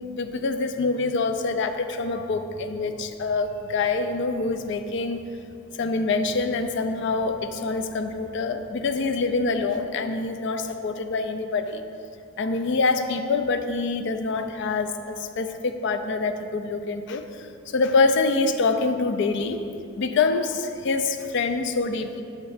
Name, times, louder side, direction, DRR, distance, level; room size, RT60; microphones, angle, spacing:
voice 1, 0.0-5.2 5.8-11.8 12.4-19.6 20.0-22.2, left 3 dB, 60° left, 8 dB, 0.4 m, -25 dB
7.0 x 4.2 x 4.9 m, 2.6 s
head